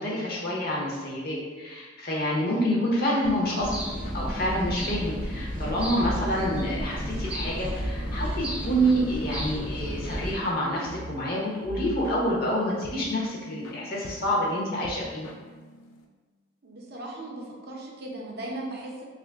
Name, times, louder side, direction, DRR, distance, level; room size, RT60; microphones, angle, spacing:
voice 1, 0.0-3.7 4.1-15.3, equal, 50° left, -4 dB, 0.7 m, -27 dB
sound 1, 3.2-16.0, left 1 dB, 85° left, 0.4 m, -44 dB
sound 2, 3.6-10.3, equal, 5° right, 0.4 m, -32 dB
voice 2, 16.6-19.0, right 1 dB, 50° right, -1 dB, 0.6 m, -37 dB
2.9 x 2.5 x 3.4 m, 1.3 s
head